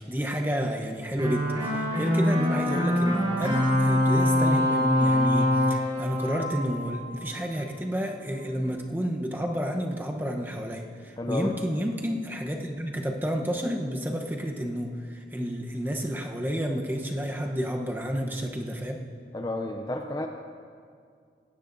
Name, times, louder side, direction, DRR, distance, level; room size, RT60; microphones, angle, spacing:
voice 1, 0.1-19.0, equal, 10° right, 1 dB, 0.9 m, -30 dB
sound 1, 1.2-7.3, left 1 dB, 25° right, 3.6 m, -24 dB
voice 2, 11.2-11.6 19.3-20.3, left 2 dB, 20° left, 4 dB, 0.5 m, -31 dB
18.5 x 16.5 x 2.7 m, 2.3 s
head